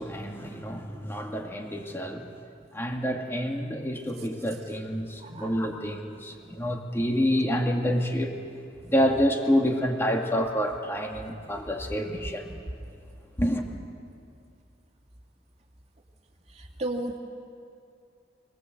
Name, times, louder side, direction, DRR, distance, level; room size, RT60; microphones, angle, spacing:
voice 1, 0.0-2.3 2.7-8.4 8.8-12.6 13.4-13.7, equal, 15° left, 2 dB, 2.2 m, -28 dB
voice 2, 5.2-5.5 16.6-17.2, right 2 dB, 40° right, 1 dB, 2.5 m, -33 dB
25.0 x 20.5 x 8.0 m, 2.4 s
head